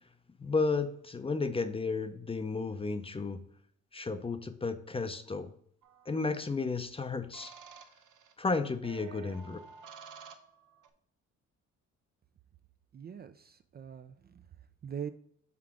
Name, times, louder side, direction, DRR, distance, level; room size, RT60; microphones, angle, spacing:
voice 1, 0.4-3.4 3.9-5.5 6.1-7.5 8.4-9.6, left 4 dB, 20° left, 10 dB, 0.5 m, -33 dB
sound 1, 5.8-6.3 7.3-8.3 8.8-10.9, right 6 dB, 80° right, 0.8 m, -52 dB
voice 2, 12.9-14.4 14.8-15.1, right 8 dB, 35° right, 10 dB, 0.4 m, -42 dB
6.0 x 3.6 x 4.7 m, 0.65 s
cardioid pair, 90°, 30 cm